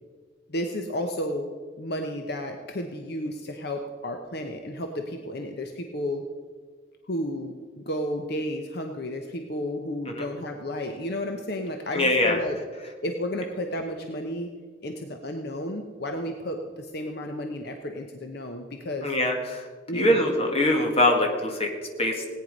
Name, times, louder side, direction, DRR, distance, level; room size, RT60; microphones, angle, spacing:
voice 1, 0.5-1.5 1.8-6.3 7.0-12.6 13.0-14.5 14.8-19.1 19.9-20.3, left 1 dB, 55° left, 4 dB, 0.9 m, -32 dB
voice 2, 11.9-12.4 19.0-19.7 19.9-22.3, left 1 dB, 30° left, 2 dB, 1.7 m, -23 dB
17.5 x 9.4 x 5.3 m, 1.5 s
head